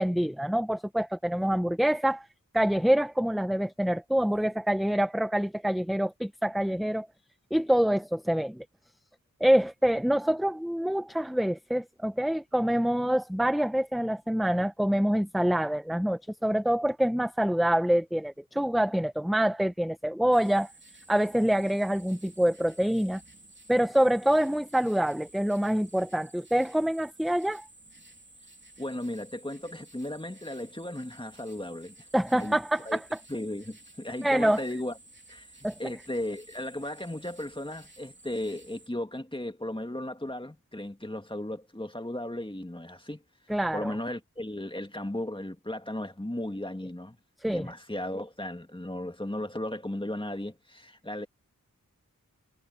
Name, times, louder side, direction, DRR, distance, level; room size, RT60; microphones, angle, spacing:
voice 1, 0.0-2.3 2.5-7.1 7.5-8.6 9.4-20.7 21.1-23.2 23.7-27.7 32.1-33.0 34.2-34.6 35.6-35.7 43.5-43.9 47.4-47.7, equal, ahead, 0.8 m, -26 dB
sound 1, 20.3-38.9, right 2 dB, 35° right, 3.3 m, -54 dB
voice 2, 28.8-32.1 32.3-32.6 32.9-33.0 33.3-35.0 35.3-35.5 35.8-43.2 43.7-47.2 47.4-51.3, left 1 dB, 15° left, 2.2 m, -35 dB
wide cardioid pair, 55°, 33 cm